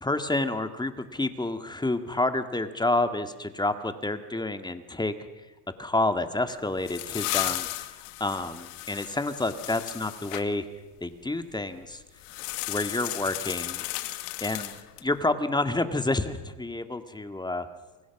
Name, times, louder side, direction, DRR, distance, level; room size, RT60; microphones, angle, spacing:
voice 1, 0.0-5.1 5.8-7.9 8.2-10.7 11.0-12.0 12.7-13.9 14.4-14.7 15.0-17.7, left 2 dB, 10° left, 9 dB, 2.1 m, -29 dB
sound 1, 6.5-10.5 12.2-15.1, left 18 dB, 70° left, 2.0 m, -34 dB
28.5 x 25.0 x 6.1 m, 1.2 s
supercardioid pair, 95°, 47 cm